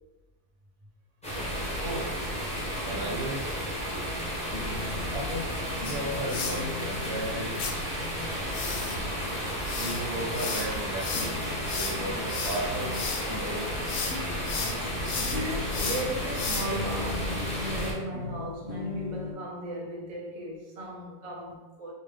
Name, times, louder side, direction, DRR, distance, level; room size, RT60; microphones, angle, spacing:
sound 1, 1.2-17.9, equal, 5° left, 0.5 m, -33 dB
voice 1, 1.8-2.2 2.8-3.5 5.1-5.5 5.7-7.6 9.8-11.4 11.6-13.0 13.3-13.8, right 1 dB, 80° right, 1.3 m, -35 dB
sound 2, 2.2-19.3, left 5 dB, 70° left, 0.6 m, -41 dB
sound 3, 5.8-6.6 7.6-7.7 8.5-13.3 13.7-14.2 14.4-16.9, left 5 dB, 85° left, 1.1 m, -34 dB
voice 2, 7.9-9.4 13.2-13.4 15.1-21.9, right 1 dB, 50° right, 0.4 m, -37 dB
3.3 x 2.4 x 3.2 m
omnidirectional pair, 1.6 m